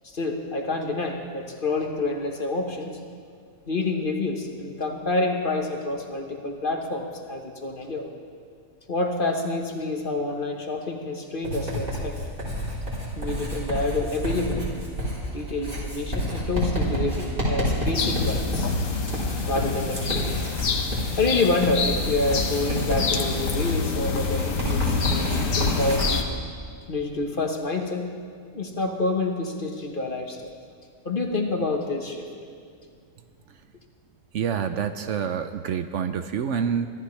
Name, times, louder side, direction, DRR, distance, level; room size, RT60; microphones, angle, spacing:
voice 1, 0.0-3.0 3.7-8.1 8.9-12.2 13.2-14.8 15.3-18.7 19.5-20.5 21.2-26.1 26.9-28.1 28.5-30.4 31.0-32.3, left 2 dB, 40° left, 2 dB, 1.3 m, -28 dB
Writing, 11.4-26.1, equal, 40° right, 3.6 m, -29 dB
sound 1, 17.9-26.2, left 5 dB, 75° left, 1.4 m, -27 dB
voice 2, 34.3-36.9, right 7 dB, 70° right, 9 dB, 0.9 m, -27 dB
24.0 x 13.0 x 3.2 m, 2.2 s
omnidirectional pair, 1.4 m